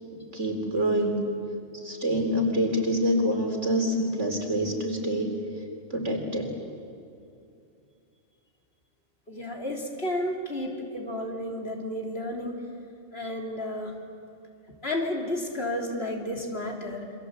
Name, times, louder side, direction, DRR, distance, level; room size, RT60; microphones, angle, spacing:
voice 1, 0.1-1.2 1.8-5.3 5.9-6.6, equal, 65° right, 3 dB, 4.2 m, -26 dB
voice 2, 9.3-12.6 13.1-13.9 14.8-17.1, left 1 dB, 50° left, 1 dB, 3.6 m, -32 dB
28.0 x 25.0 x 8.2 m, 2.6 s
omnidirectional pair, 1.3 m